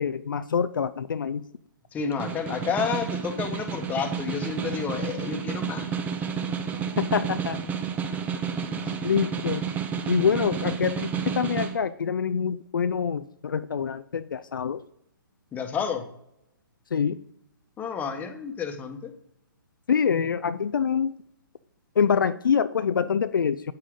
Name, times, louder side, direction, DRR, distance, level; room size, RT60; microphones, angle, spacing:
voice 1, 0.0-1.4 7.0-7.6 9.0-9.6 10.1-14.8 16.9-17.2 19.9-21.1 22.0-23.7, left 6 dB, 70° left, 12 dB, 0.4 m, -25 dB
voice 2, 1.9-6.2 8.8-8.9 15.5-16.0 17.8-19.1, left 6 dB, 15° left, 5 dB, 1.1 m, -30 dB
Snare drum, 2.0-11.8, right 6 dB, 15° right, 0.6 m, -31 dB
8.6 x 7.5 x 3.8 m, 0.78 s
figure-of-eight pair, 130°, 11 cm